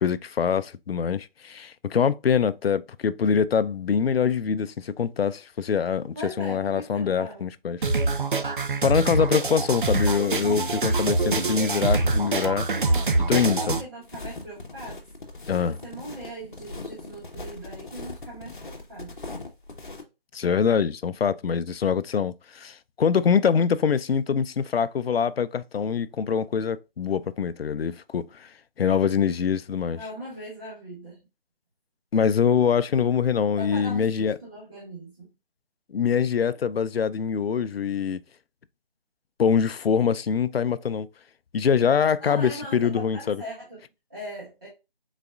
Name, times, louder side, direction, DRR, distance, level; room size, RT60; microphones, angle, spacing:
voice 1, 0.0-7.8 8.8-12.7 13.3-13.8 15.5-15.8 20.3-28.5 28.8-30.0 32.1-34.4 35.9-38.2 39.4-41.1 41.5-43.4, left 7 dB, 80° left, 0.5 m, -24 dB
voice 2, 6.1-7.4 12.9-15.0 15.6-19.1 29.9-31.2 33.6-35.3 42.2-43.8 44.1-44.7, equal, 20° right, 1.5 m, -39 dB
sound 1, 7.8-13.8, right 3 dB, 60° right, 0.6 m, -25 dB
sound 2, 14.0-20.0, left 2 dB, 55° left, 1.0 m, -40 dB
4.9 x 4.1 x 2.3 m
figure-of-eight pair, 175°, 30 cm